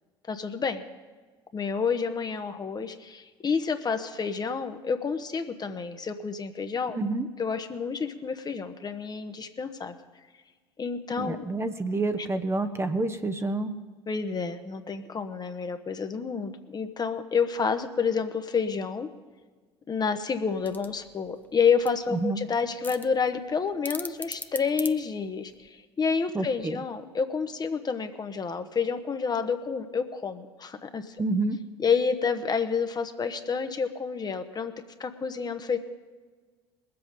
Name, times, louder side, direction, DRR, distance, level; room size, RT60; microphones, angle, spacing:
voice 1, 0.3-0.8 1.5-7.0 7.4-9.9 10.8-11.4 14.1-19.1 19.9-31.2 31.8-34.7 35.0-35.8, left 5 dB, 30° left, 8 dB, 1.2 m, -29 dB
voice 2, 6.9-7.3 11.2-13.8 22.1-22.4 26.3-26.8 31.2-31.6, right 2 dB, 20° right, 7 dB, 1.0 m, -28 dB
sound 1, 20.5-25.7, left 2 dB, 15° left, 0.9 m, -42 dB
21.0 x 7.9 x 5.3 m, 1.4 s
hypercardioid pair, 65°, 13 cm